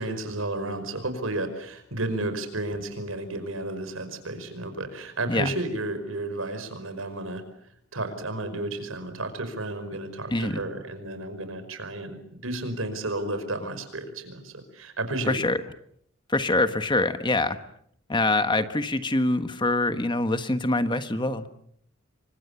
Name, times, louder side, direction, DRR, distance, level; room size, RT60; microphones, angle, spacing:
voice 1, 0.0-7.4 7.9-15.5, right 2 dB, 85° right, 10 dB, 5.3 m, -32 dB
voice 2, 15.3-15.6 16.3-17.6 18.1-21.5, left 2 dB, 25° left, 10 dB, 1.3 m, -24 dB
28.0 x 25.0 x 7.1 m, 0.69 s
head